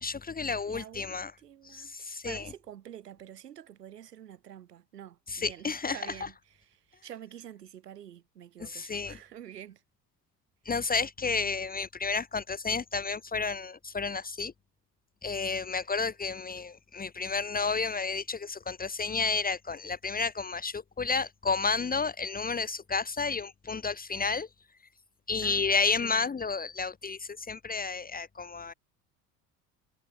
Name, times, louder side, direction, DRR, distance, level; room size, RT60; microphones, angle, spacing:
voice 1, 0.0-1.3 1.6-2.5 5.3-6.0 8.6-9.2 10.6-14.5 15.2-24.5 25.3-28.7, left 4 dB, 20° left, 1.2 m, -31 dB
voice 2, 0.7-9.8 10.8-10.9 25.4-25.7 26.0-26.3, right 10 dB, 75° right, 5.9 m, -48 dB
figure-of-eight pair, 60°, 48 cm